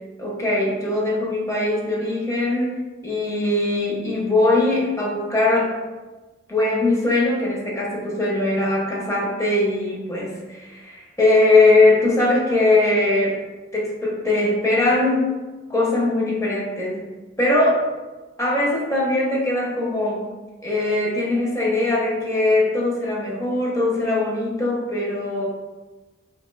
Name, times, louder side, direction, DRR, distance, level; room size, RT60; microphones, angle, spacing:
voice 1, 0.2-5.8 6.5-13.4 13.7-15.3 15.7-17.0 17.4-17.8 18.4-20.3 20.6-25.5, left 2 dB, 15° left, -4 dB, 0.6 m, -21 dB
2.8 x 2.2 x 3.1 m, 1.2 s
head